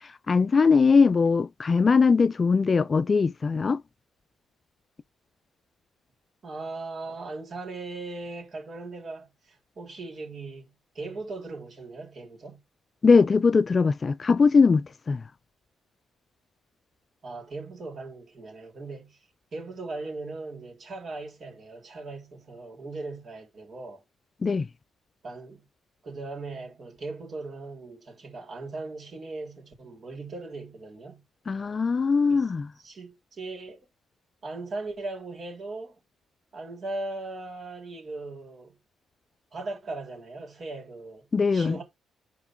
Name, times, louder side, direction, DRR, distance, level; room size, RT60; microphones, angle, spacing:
voice 1, 0.0-3.8 13.0-15.2 24.4-24.7 31.5-32.7 41.3-41.8, left 5 dB, 35° left, 0.3 m, -21 dB
voice 2, 6.4-12.6 17.2-19.2 19.5-24.0 25.2-25.7 26.0-31.2 32.3-32.5 32.8-33.9 34.4-36.0 36.5-38.8 39.5-41.8, right 3 dB, 45° right, 3.6 m, -38 dB
5.9 x 4.5 x 4.6 m
cardioid pair, 90°, 0 cm